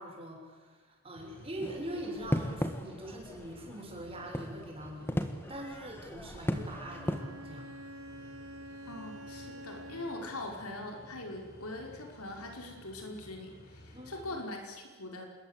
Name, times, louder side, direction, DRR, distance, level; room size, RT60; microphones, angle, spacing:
voice 1, 0.0-5.2 5.5-7.7 13.9-14.3, right 1 dB, 25° right, 0 dB, 6.6 m, -43 dB
sound 1, 1.1-14.4, equal, 45° left, 4.8 m, -55 dB
sound 2, 1.6-7.2, equal, 10° left, 1.5 m, -37 dB
Bowed string instrument, 6.7-10.6, equal, 80° right, 2.5 m, -47 dB
voice 2, 8.9-15.3, left 2 dB, 90° left, 2 dB, 5.3 m, -42 dB
26.5 x 21.5 x 8.3 m, 1.4 s
head